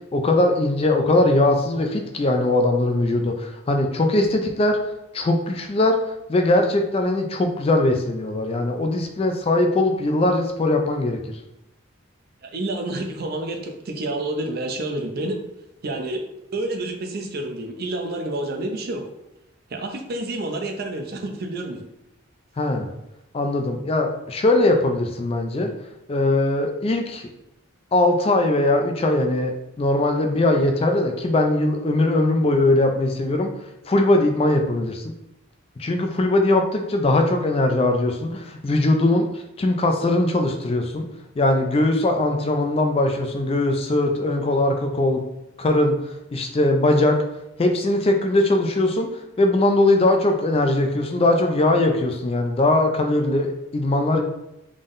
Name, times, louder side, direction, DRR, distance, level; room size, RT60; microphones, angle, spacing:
voice 1, 0.1-4.8 5.1-6.0 6.3-11.2 22.6-22.9 23.3-25.7 26.1-27.3 27.9-33.5 33.9-35.0 35.8-41.0 41.4-45.2 45.6-45.9 46.3-47.2 47.6-49.1 49.4-54.2, left 2 dB, 30° left, 4 dB, 0.3 m, -20 dB
voice 2, 12.4-15.4 15.8-16.2 16.5-19.1 19.7-21.8, right 2 dB, 45° right, 4 dB, 0.5 m, -29 dB
3.7 x 3.6 x 2.5 m, 0.87 s
head